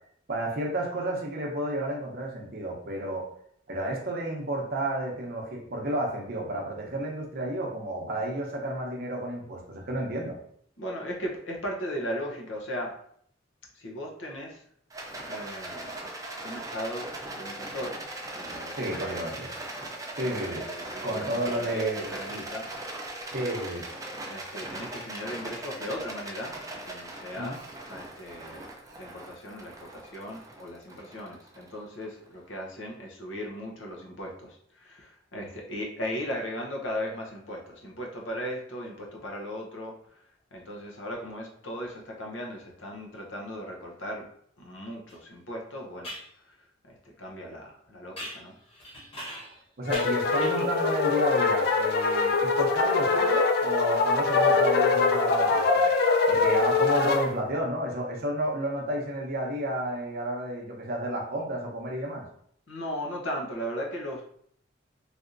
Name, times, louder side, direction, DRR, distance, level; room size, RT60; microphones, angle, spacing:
voice 1, 0.3-3.3 3.7-10.4 18.7-19.5 20.2-20.7 21.0-22.4 23.3-23.9 27.4-27.6 49.8-55.8 56.3-62.2, right 1 dB, 55° right, 0 dB, 0.7 m, -31 dB
voice 2, 10.8-13.0 13.7-14.6 15.3-15.9 16.4-18.0 18.3-19.2 20.2-22.7 24.2-26.6 26.8-27.6 27.9-44.3 44.6-46.1 46.4-48.6 62.7-64.2, equal, 90° left, 0 dB, 0.8 m, -37 dB
Rattle, 14.9-32.3, right 1 dB, 20° right, 0.5 m, -39 dB
sound 1, 45.1-45.2 46.0-46.3 48.2-49.6 49.9-50.8, equal, 30° left, 1.1 m, -41 dB
sound 2, 49.9-57.3, left 4 dB, 55° left, 0.4 m, -23 dB
3.3 x 2.7 x 2.5 m, 0.65 s
head